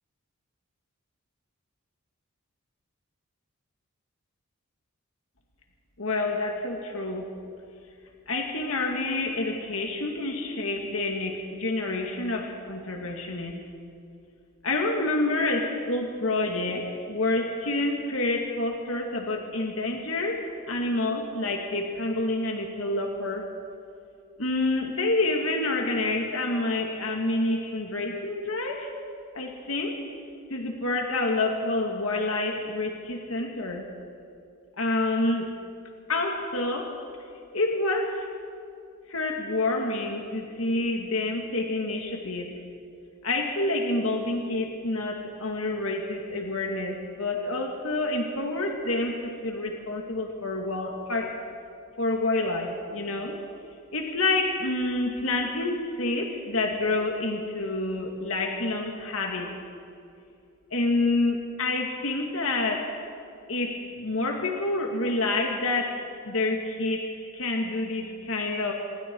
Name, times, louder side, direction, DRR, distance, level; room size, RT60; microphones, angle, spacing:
voice 1, 6.0-7.3 8.3-13.6 14.6-23.5 24.4-28.9 29.3-30.0 30.5-33.9 34.8-35.5 36.1-36.9 37.5-38.3 39.1-42.5 43.2-51.3 52.0-53.4 53.9-59.5 60.7-62.9 63.5-66.0 66.2-68.7, left 2 dB, 65° left, 2 dB, 2.2 m, -28 dB
26.5 x 22.5 x 4.7 m, 2.5 s
head